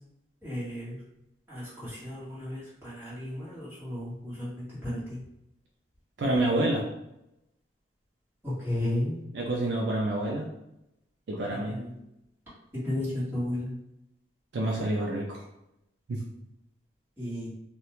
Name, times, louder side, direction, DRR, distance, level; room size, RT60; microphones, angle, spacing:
voice 1, 0.4-1.0 1.5-4.9 8.6-9.2 11.7-11.9 12.8-13.7 17.2-17.5, left 1 dB, 10° right, -11 dB, 1.2 m, -33 dB
voice 2, 6.2-6.9 9.3-10.5 11.3-11.7 14.5-15.4 16.1-16.2, right 1 dB, 60° right, -1 dB, 0.4 m, -28 dB
2.4 x 2.2 x 2.9 m, 0.84 s
head